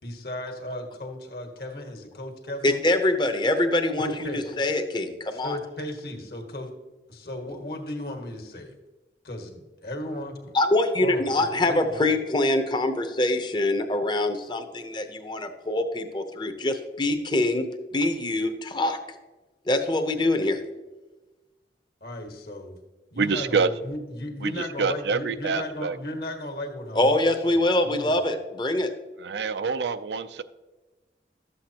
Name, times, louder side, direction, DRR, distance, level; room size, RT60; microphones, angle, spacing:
voice 1, 0.0-2.8 4.0-4.6 5.3-6.7 7.1-8.7 9.2-10.6 11.0-12.0 22.0-22.8 23.1-28.1, left 1 dB, 60° left, 4 dB, 1.5 m, -35 dB
voice 2, 2.6-5.6 10.5-19.0 19.7-20.6 26.9-28.9, left 1 dB, 25° left, 7 dB, 0.7 m, -24 dB
voice 3, 23.2-23.7 24.4-26.0 29.2-30.4, right 5 dB, 75° right, 12 dB, 0.5 m, -26 dB
12.5 x 7.8 x 2.9 m, 1.2 s
head